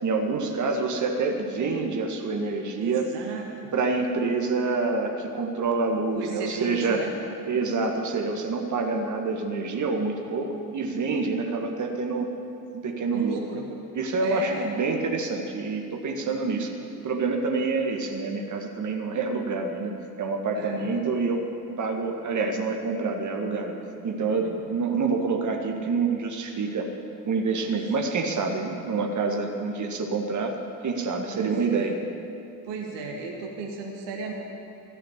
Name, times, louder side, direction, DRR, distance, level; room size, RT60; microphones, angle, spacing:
voice 1, 0.0-3.1 3.7-7.1 7.5-12.3 12.7-13.4 13.9-16.7 17.0-21.5 21.8-23.7 24.0-26.9 27.2-30.6 30.8-32.0, right 4 dB, 35° right, 2 dB, 1.8 m, -27 dB
voice 2, 2.8-3.7 6.1-7.1 13.1-13.7 14.2-14.7 16.2-16.3 20.5-20.9 24.4-24.7 27.6-28.1 31.3-32.0 32.6-34.3, right 4 dB, 60° right, 2 dB, 1.7 m, -35 dB
15.0 x 6.4 x 10.0 m, 2.6 s
figure-of-eight pair, 55°, 48 cm